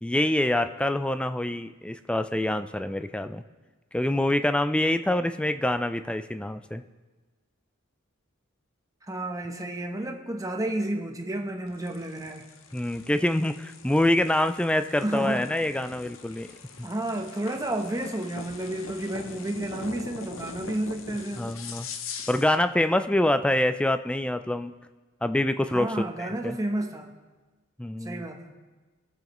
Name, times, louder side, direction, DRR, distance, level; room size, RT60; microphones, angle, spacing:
voice 1, 0.0-3.4 3.9-6.8 12.7-16.5 21.4-21.9 22.3-24.7 25.2-25.9 26.2-26.6 27.8-28.2, left 1 dB, 5° left, 10 dB, 0.3 m, -25 dB
voice 2, 9.1-12.5 15.0-15.5 16.8-21.6 25.7-27.1 28.0-28.5, right 1 dB, 15° right, 3 dB, 0.9 m, -31 dB
sound 1, 11.7-22.6, left 5 dB, 75° left, 0.7 m, -42 dB
21.0 x 7.2 x 3.1 m, 1.3 s
head